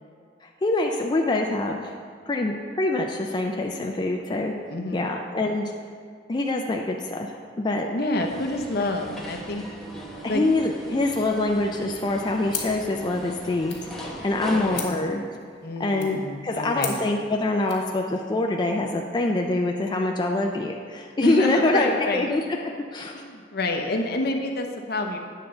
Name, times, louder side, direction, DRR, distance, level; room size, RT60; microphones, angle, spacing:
voice 1, 0.4-1.9 2.3-4.5 4.9-5.7 6.3-7.9 10.2-15.2 15.8-22.4 22.9-23.1, left 2 dB, 25° left, 1 dB, 0.4 m, -25 dB
voice 2, 4.7-5.1 7.9-9.6 10.2-10.4 14.5-14.9 15.6-17.0 21.2-22.3 23.1-25.2, left 2 dB, 60° left, 3 dB, 0.8 m, -28 dB
sound 1, 8.2-14.8, right 1 dB, ahead, 1.0 m, -39 dB
sound 2, 12.5-17.9, left 7 dB, 85° left, 1.6 m, -39 dB
9.1 x 3.8 x 6.8 m, 2.1 s
head